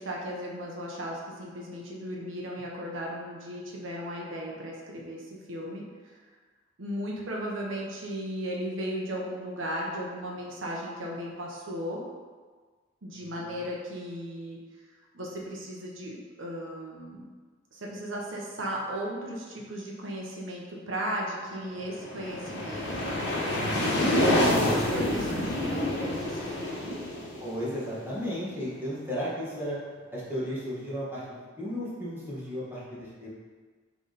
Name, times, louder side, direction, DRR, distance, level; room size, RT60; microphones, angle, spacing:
voice 1, 0.0-6.2 6.8-12.0 13.0-14.6 15.1-17.2 17.7-23.2 24.2-27.0, equal, 75° right, -3 dB, 1.1 m, -36 dB
sound 1, 21.8-28.5, left 1 dB, 55° left, 1.5 m, -28 dB
voice 2, 27.4-29.8 30.1-33.3, equal, 10° right, -9 dB, 1.9 m, -35 dB
7.5 x 3.6 x 4.2 m, 1.5 s
head